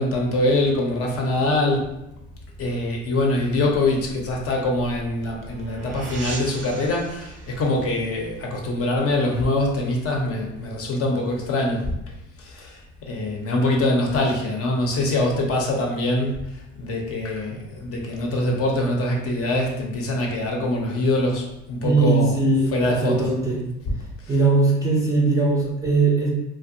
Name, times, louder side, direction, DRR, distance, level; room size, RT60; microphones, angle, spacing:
voice 1, 0.0-1.9 2.6-11.9 12.4-16.4 16.8-22.3 22.7-23.3, left 1 dB, 45° left, 0 dB, 0.6 m, -24 dB
sound 1, 4.7-9.6, right 3 dB, 60° right, 0.5 m, -40 dB
voice 2, 21.8-23.6 24.3-26.3, right 3 dB, 10° right, -5 dB, 0.5 m, -20 dB
2.5 x 2.2 x 2.6 m, 0.85 s
supercardioid pair, 100°, 34 cm